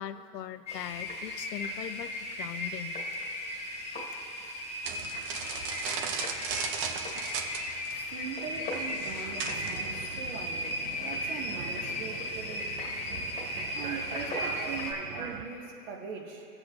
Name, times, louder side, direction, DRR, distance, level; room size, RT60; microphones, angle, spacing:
voice 1, 0.0-3.0, left 10 dB, 90° left, 11 dB, 0.7 m, -40 dB
sound 1, 0.7-14.9, left 1 dB, 15° left, 1.5 m, -36 dB
sound 2, 4.8-9.9, right 6 dB, 25° right, 0.5 m, -36 dB
voice 2, 8.1-12.7 13.7-16.5, right 6 dB, 55° right, 1 dB, 1.7 m, -41 dB
sound 3, 9.4-15.4, right 7 dB, 70° right, 0.9 m, -42 dB
19.0 x 7.8 x 2.5 m, 2.6 s
hypercardioid pair, 135°, 48 cm